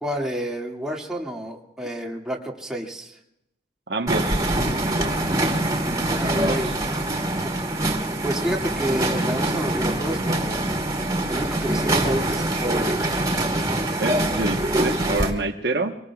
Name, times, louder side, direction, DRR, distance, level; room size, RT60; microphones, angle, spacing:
voice 1, 0.0-3.2 6.1-6.7 7.4-7.6 8.2-10.6 11.3-13.1, equal, 5° right, -2 dB, 2.2 m, -29 dB
voice 2, 3.9-4.6 6.3-6.8 14.0-16.0, right 2 dB, 65° right, 4 dB, 1.2 m, -27 dB
sound 1, 4.1-15.3, right 1 dB, 20° right, 2.4 m, -24 dB
25.0 x 19.5 x 2.4 m, 0.80 s
head